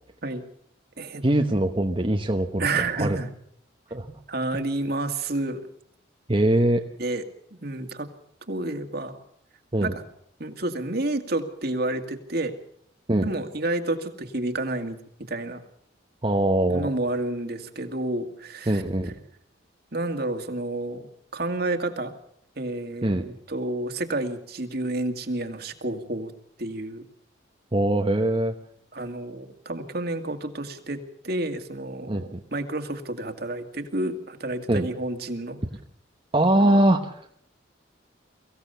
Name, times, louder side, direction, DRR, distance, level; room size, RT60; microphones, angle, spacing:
voice 1, 1.2-2.7 3.0-3.2 3.9-4.1 6.3-6.8 9.7-10.0 13.1-13.3 16.2-16.9 18.7-19.1 23.0-23.3 27.7-28.5 32.1-32.4 34.7-34.9 36.3-37.3, right 1 dB, 25° right, 3 dB, 1.1 m, -22 dB
voice 2, 2.6-3.3 4.3-5.6 7.0-7.2 7.6-8.1 8.5-9.2 9.8-10.0 10.4-12.6 13.2-15.0 15.3-15.6 16.7-18.8 19.9-21.1 21.3-22.1 22.6-26.3 26.6-27.0 28.9-31.0 31.2-35.6 36.6-36.7, right 2 dB, 55° right, 6 dB, 2.2 m, -30 dB
23.5 x 16.0 x 6.9 m, 0.67 s
head